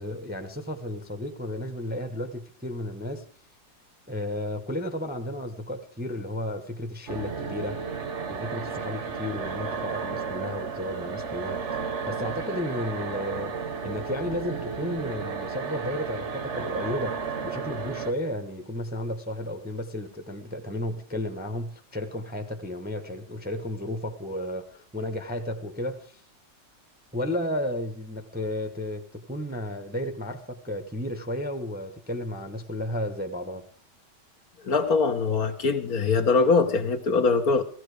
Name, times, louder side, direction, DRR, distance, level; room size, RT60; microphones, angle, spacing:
voice 1, 0.0-3.2 4.1-7.8 8.3-13.5 13.8-26.2 27.1-33.6, left 1 dB, 5° right, 1.0 m, -33 dB
sound 1, 7.1-18.1, right 5 dB, 45° right, 1.3 m, -33 dB
voice 2, 34.6-37.6, left 4 dB, 55° left, 1.6 m, -22 dB
16.0 x 16.0 x 5.0 m
omnidirectional pair, 1.9 m